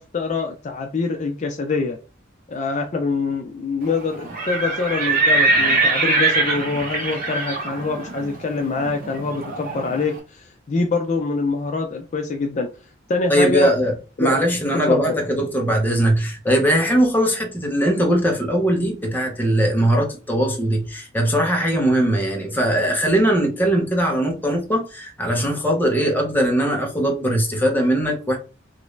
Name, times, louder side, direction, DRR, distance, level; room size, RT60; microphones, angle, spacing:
voice 1, 0.0-2.0 2.5-12.7 13.1-13.7 14.2-14.4 14.9-15.2, left 3 dB, 40° left, 0.4 m, -24 dB
Livestock farm animals working animals, 4.2-10.0, right 3 dB, 45° right, 1.0 m, -22 dB
voice 2, 13.3-13.9 14.2-28.4, right 1 dB, 10° left, 0.7 m, -20 dB
3.0 x 2.5 x 3.1 m
head